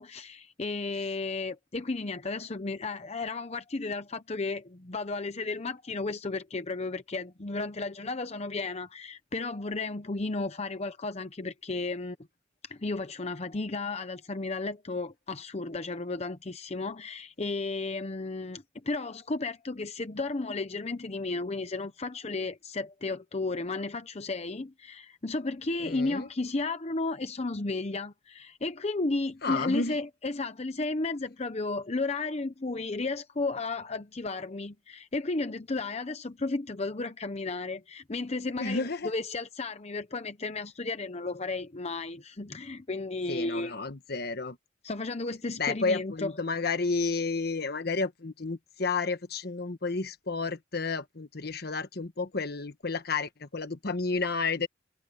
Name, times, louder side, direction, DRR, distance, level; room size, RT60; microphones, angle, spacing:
voice 1, 0.0-12.2 12.6-43.8 44.8-46.3, left 3 dB, 35° left, 0.8 m, -33 dB
voice 2, 25.8-26.3 29.4-30.0 38.6-39.1 43.3-44.6 45.6-54.7, left 4 dB, 60° left, 1.3 m, -31 dB
head